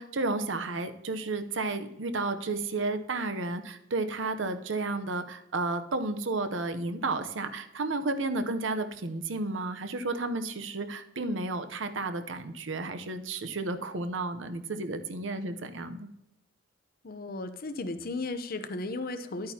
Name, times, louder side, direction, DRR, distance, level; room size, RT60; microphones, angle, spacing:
voice 1, 0.0-16.1, right 3 dB, 75° right, 9 dB, 0.8 m, -32 dB
voice 2, 17.0-19.5, left 2 dB, 50° left, 9 dB, 0.7 m, -35 dB
12.0 x 8.7 x 2.8 m, 0.86 s
head